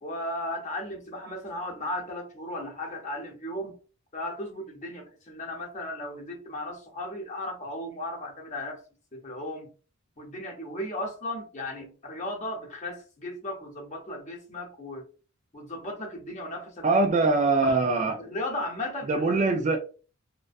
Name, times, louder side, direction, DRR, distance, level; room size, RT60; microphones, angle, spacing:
voice 1, 0.0-3.8 4.1-8.8 9.1-9.7 10.2-15.0 15.5-17.0 17.6-19.4, left 1 dB, 35° left, 0.7 m, -36 dB
voice 2, 16.8-18.2 19.1-19.8, right 3 dB, 35° right, 0.3 m, -23 dB
2.4 x 2.2 x 2.4 m
head